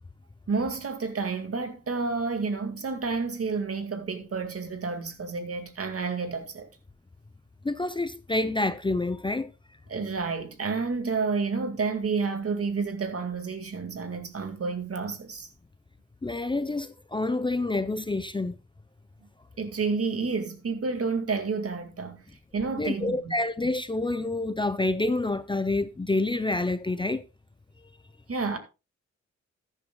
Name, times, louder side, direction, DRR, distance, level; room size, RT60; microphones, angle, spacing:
voice 1, 0.5-6.7 9.9-15.5 19.6-22.2 22.5-23.3 28.3-28.6, right 4 dB, 50° right, 2.1 m, -30 dB
voice 2, 7.6-9.5 16.2-18.6 22.8-27.3, left 2 dB, 15° left, 0.6 m, -28 dB
14.0 x 10.0 x 2.3 m
cardioid pair, 55°, 30 cm